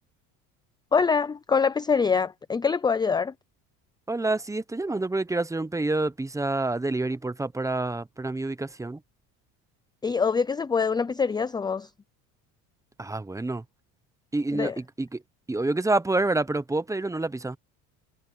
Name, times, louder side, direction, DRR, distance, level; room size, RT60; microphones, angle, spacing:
voice 1, 0.9-3.3 10.0-11.9 14.5-14.8, left 5 dB, 10° left, 0.5 m, -24 dB
voice 2, 4.1-9.0 13.0-13.6 14.3-15.2 15.5-17.6, right 2 dB, 10° right, 0.9 m, -28 dB
cardioid pair, 125°, 38 cm